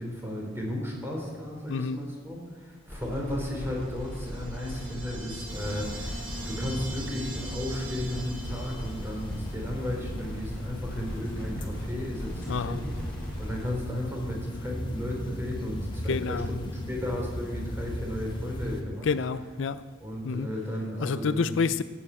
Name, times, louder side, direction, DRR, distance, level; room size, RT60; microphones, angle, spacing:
voice 1, 0.0-13.0 13.4-19.1 20.0-21.5, left 1 dB, 10° right, -2 dB, 3.7 m, -34 dB
voice 2, 1.7-2.0 12.5-12.8 16.1-16.5 19.0-19.8 20.2-20.5 21.0-21.8, left 5 dB, 65° left, 13 dB, 0.5 m, -28 dB
sound 1, 2.9-13.7, equal, 10° left, 4.5 m, -39 dB
sound 2, 4.0-9.4, right 2 dB, 75° right, 3.0 m, -42 dB
sound 3, 5.5-18.8, equal, 25° left, 1.5 m, -37 dB
14.0 x 9.1 x 8.6 m, 1.5 s
head